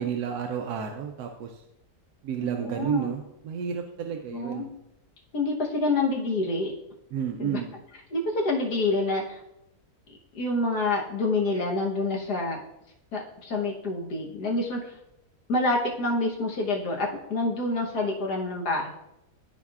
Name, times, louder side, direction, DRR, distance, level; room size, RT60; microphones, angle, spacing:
voice 1, 0.0-1.6 2.2-4.7 7.1-7.7, right 8 dB, 70° right, 3 dB, 1.0 m, -31 dB
voice 2, 2.4-3.1 4.3-4.7 5.3-6.7 7.4-7.6 8.1-9.4 10.3-12.6 13.1-14.9 15.5-18.9, left 2 dB, 65° left, 0 dB, 1.6 m, -27 dB
12.5 x 4.4 x 2.4 m, 0.85 s
omnidirectional pair, 1.9 m